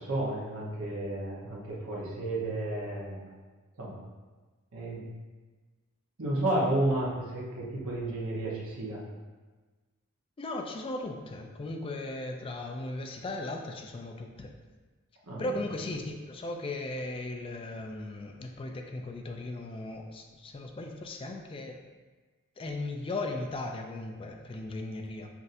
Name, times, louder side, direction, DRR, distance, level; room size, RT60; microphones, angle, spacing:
voice 1, 0.0-3.3 3.8-4.0 4.7-5.1 6.2-9.0 15.3-15.5, right 1 dB, 65° right, -5 dB, 1.0 m, -32 dB
voice 2, 10.4-14.5 15.4-21.8 22.6-25.3, left 2 dB, 25° left, 3 dB, 0.3 m, -37 dB
5.9 x 2.6 x 2.6 m, 1.3 s
head